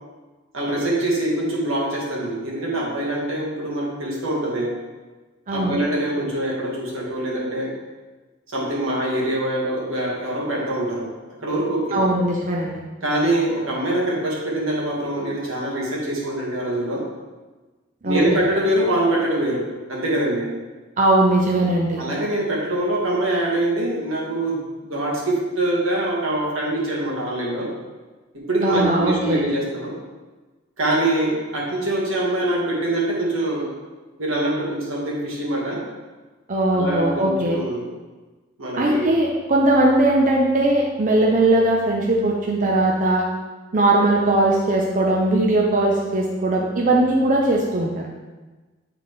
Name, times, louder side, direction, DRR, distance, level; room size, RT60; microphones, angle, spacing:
voice 1, 0.5-4.8 5.5-7.7 8.5-11.1 11.4-12.0 13.0-17.0 18.0-20.5 22.0-27.7 28.5-30.0 30.8-33.7 34.2-35.8 36.7-37.8 38.6-39.1, right 1 dB, 85° right, -4 dB, 1.8 m, -24 dB
voice 2, 5.5-5.8 11.9-12.8 18.0-18.4 21.0-22.0 28.6-29.4 36.5-37.6 38.8-43.3 43.7-48.0, right 2 dB, 40° right, -1 dB, 0.6 m, -19 dB
8.6 x 4.0 x 3.2 m, 1.2 s
head